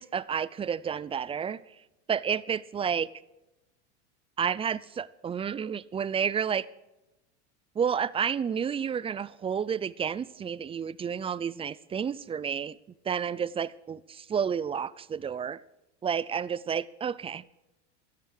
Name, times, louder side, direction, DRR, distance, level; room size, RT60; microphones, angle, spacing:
voice 1, 0.0-1.6 2.1-3.1 4.4-6.7 7.8-12.8 13.0-15.6 16.0-17.4, right 7 dB, 15° right, 19 dB, 0.5 m, -30 dB
16.5 x 13.5 x 4.8 m, 0.96 s
hypercardioid pair, 105°, 35 cm